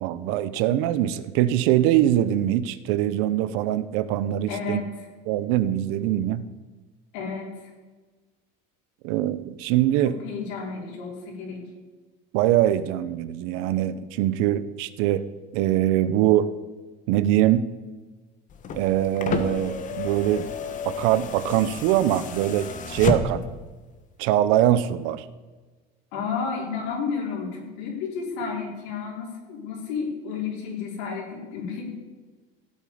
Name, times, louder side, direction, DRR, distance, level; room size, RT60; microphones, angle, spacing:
voice 1, 0.0-4.8 5.3-6.4 9.0-10.2 12.3-15.3 15.5-16.5 17.1-17.6 18.7-20.5 20.8-23.5 24.2-25.3, right 12 dB, 75° right, 14 dB, 0.9 m, -23 dB
voice 2, 4.5-4.8 7.1-7.7 10.0-11.6 26.1-31.9, left 5 dB, 85° left, -2 dB, 5.1 m, -32 dB
sound 1, 18.5-23.6 24.8-24.9, left 5 dB, 35° left, 1.4 m, -31 dB
16.5 x 8.9 x 5.0 m, 1.3 s
cardioid pair, 135°, 21 cm